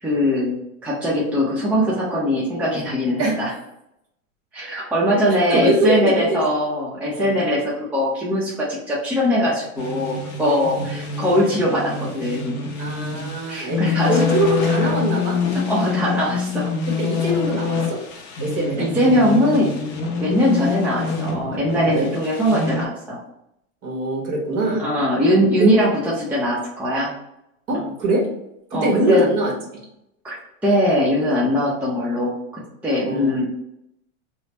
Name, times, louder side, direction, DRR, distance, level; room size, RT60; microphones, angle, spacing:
voice 1, 0.0-3.5 4.5-12.5 13.5-14.3 15.5-16.7 18.8-19.7 20.2-23.2 24.8-27.1 27.7-27.9 28.7-29.3 30.2-30.4 30.6-33.5, equal, 5° right, -6 dB, 0.6 m, -21 dB
voice 2, 5.5-6.2 7.1-7.4 10.8-10.9 12.8-13.8 14.1-15.4 17.0-18.0 18.4-18.9 20.2-20.4 21.8-22.1 23.8-24.8 25.6-25.7 27.7-28.2 28.7-29.5 33.0-33.5, right 2 dB, 40° right, -2 dB, 1.3 m, -22 dB
sound 1, 9.8-22.9, left 5 dB, 35° left, 0.7 m, -26 dB
3.1 x 2.1 x 4.1 m, 0.81 s
supercardioid pair, 120°, 41 cm